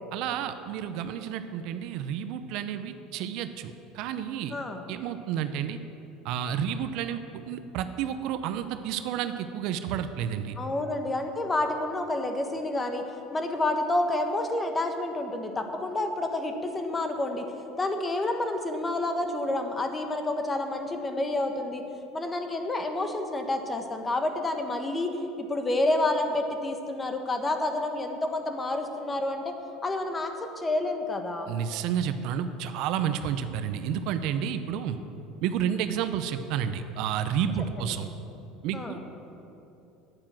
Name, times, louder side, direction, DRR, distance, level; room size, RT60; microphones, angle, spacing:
voice 1, 0.1-4.5 4.9-5.8 6.2-10.6 31.5-35.0 35.4-38.1 38.6-39.1, right 9 dB, 65° right, 10 dB, 0.7 m, -30 dB
voice 2, 4.5-4.8 10.6-13.1 13.3-17.5 17.8-21.8 22.1-29.4 29.8-31.5 37.8-38.0 38.7-39.0, left 2 dB, 20° left, 5 dB, 1.3 m, -29 dB
9.9 x 8.8 x 7.5 m, 2.9 s
supercardioid pair, 105°, 0 cm